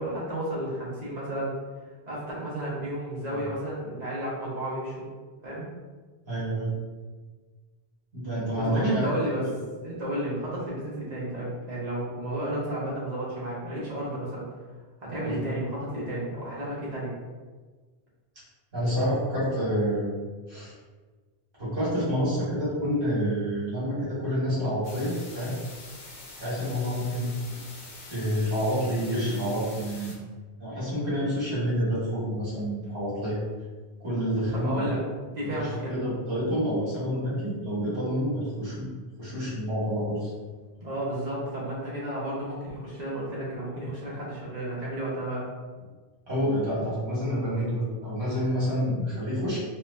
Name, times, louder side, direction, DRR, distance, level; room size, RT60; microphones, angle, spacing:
voice 1, 0.0-1.5 2.1-5.0 5.4-5.7 8.5-9.4 9.8-14.5 15.0-17.1 34.5-35.0 35.3-36.0 40.8-45.4, right 1 dB, 45° right, -7 dB, 1.1 m, -32 dB
voice 2, 6.3-6.7 8.1-9.1 15.2-15.4 18.7-20.1 20.5-20.7 21.6-25.5 26.4-27.3 28.1-30.1 30.6-33.4 34.0-35.0 35.4-38.9 39.2-40.3 46.3-49.6, equal, 60° right, -10 dB, 1.8 m, -28 dB
sound 1, 24.8-30.1, left 2 dB, 60° left, 0.8 m, -45 dB
4.2 x 2.2 x 2.6 m, 1.4 s
omnidirectional pair, 1.0 m